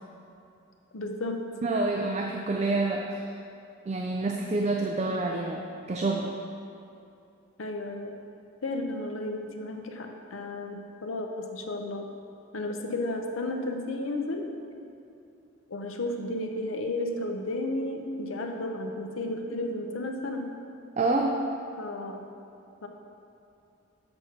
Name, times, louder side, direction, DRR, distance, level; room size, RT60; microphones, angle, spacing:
voice 1, 0.9-1.4 7.6-8.2 8.6-12.1 12.5-14.5 15.7-20.5 21.8-22.3 22.8-22.9, left 2 dB, 85° left, 4 dB, 0.7 m, -33 dB
voice 2, 1.6-3.2 3.9-6.3 21.0-21.4, right 2 dB, 35° right, 1 dB, 0.4 m, -28 dB
7.8 x 4.4 x 5.8 m, 2.7 s
head